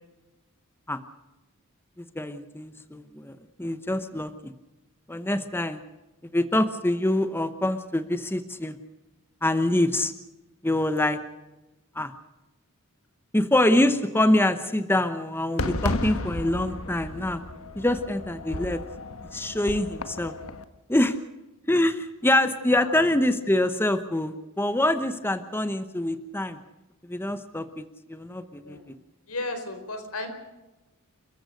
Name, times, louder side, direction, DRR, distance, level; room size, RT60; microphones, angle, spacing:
voice 1, 2.0-4.5 5.1-5.8 6.3-8.8 9.4-10.1 10.6-11.2 12.0-12.1 13.3-17.4 17.8-18.8 19.3-20.3 20.9-21.2 21.7-26.6 27.1-29.0, left 1 dB, 10° left, 10 dB, 0.9 m, -25 dB
Fireworks, 15.6-20.6, left 2 dB, 70° left, 1.5 m, -33 dB
voice 2, 29.3-30.3, left 2 dB, 85° left, 7 dB, 4.6 m, -35 dB
29.5 x 15.0 x 6.5 m, 1.0 s
head